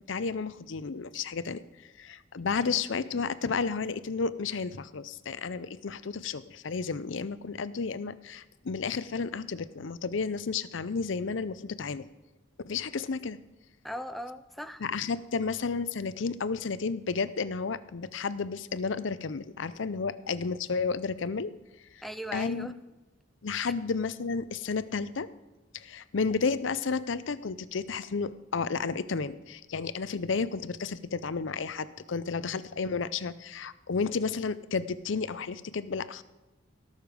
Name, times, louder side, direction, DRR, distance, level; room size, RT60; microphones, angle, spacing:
voice 1, 0.1-1.6 2.0-12.1 12.7-13.4 14.8-21.5 22.3-22.7 23.4-25.3 25.7-36.2, left 5 dB, 70° left, 15 dB, 0.6 m, -32 dB
voice 2, 2.4-2.8 13.8-14.8 22.0-22.7, equal, ahead, 10 dB, 0.5 m, -39 dB
17.5 x 6.6 x 5.2 m, 1.1 s
head